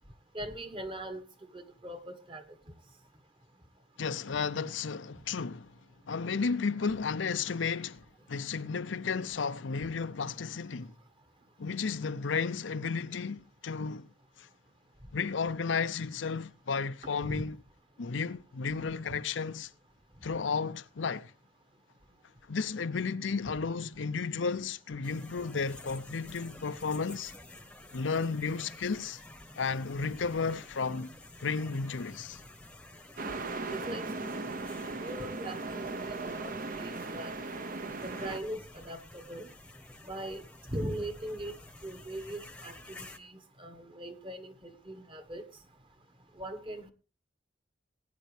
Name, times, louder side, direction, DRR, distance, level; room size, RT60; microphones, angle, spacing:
voice 1, 0.3-1.2 1.5-2.4 17.3-17.4 33.2-33.4 33.7-34.4 35.0-35.6 36.0-37.4 38.0-39.5 40.1-40.4 40.7-41.5 41.8-45.4 46.4-46.9, right 1 dB, 30° right, 1.3 m, -40 dB
voice 2, 4.0-5.7 6.1-10.9 11.6-14.1 14.4-14.5 15.1-17.6 18.0-19.7 20.2-21.3 22.5-27.3 27.9-29.2 29.6-31.1 31.4-32.4, left 5 dB, 90° left, 0.6 m, -33 dB
sound 1, 25.0-43.2, left 2 dB, 5° left, 1.0 m, -51 dB
sound 2, 33.2-38.4, right 3 dB, 50° right, 0.8 m, -38 dB
19.0 x 9.3 x 3.3 m
head